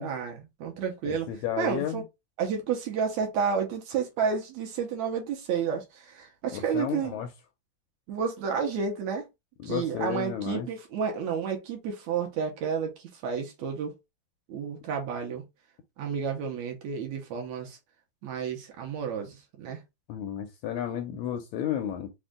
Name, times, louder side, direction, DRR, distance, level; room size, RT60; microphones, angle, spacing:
voice 1, 0.0-1.3 1.6-2.0 2.4-7.2 8.1-9.3 9.6-14.0 14.5-15.4 16.0-17.8 18.2-19.8, right 6 dB, 70° right, 2.0 m, -31 dB
voice 2, 1.1-2.0 6.5-7.3 9.6-10.7 20.1-22.1, left 10 dB, 80° left, 1.7 m, -32 dB
5.3 x 2.4 x 3.5 m
omnidirectional pair, 3.7 m